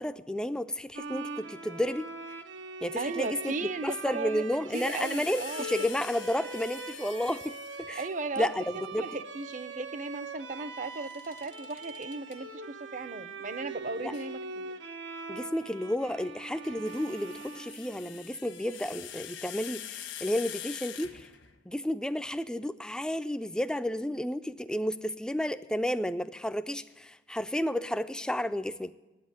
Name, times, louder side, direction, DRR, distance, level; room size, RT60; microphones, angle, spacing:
voice 1, 0.0-2.1 2.8-3.5 3.8-7.5 7.9-8.0 8.4-8.6 8.9-9.1 14.0-14.1 15.3-21.3 21.7-28.9, equal, 5° left, 11 dB, 0.4 m, -32 dB
Bowed string instrument, 0.9-18.4, right 3 dB, 75° right, 0.9 m, -42 dB
voice 2, 3.0-5.9 6.4-6.5 8.0-8.5 9.0-14.7, right 3 dB, 40° right, 14 dB, 0.6 m, -36 dB
sound 1, 4.7-8.0 10.9-12.4 14.1-14.3 16.4-21.6, left 10 dB, 75° left, 1.3 m, -44 dB
9.6 x 8.8 x 9.8 m, 1.1 s
head